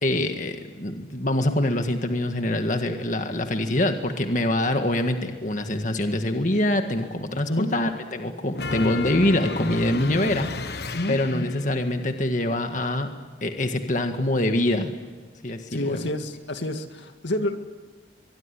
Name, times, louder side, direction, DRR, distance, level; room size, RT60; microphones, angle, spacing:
voice 1, 0.0-10.8 11.1-13.1 13.4-14.9 15.4-16.1, left 1 dB, 45° left, 6 dB, 1.8 m, -25 dB
sound 1, 8.5-11.7, left 3 dB, 60° left, 1.3 m, -32 dB
voice 2, 15.7-17.6, left 1 dB, 80° left, 7 dB, 2.1 m, -28 dB
23.5 x 23.0 x 9.9 m, 1.4 s
head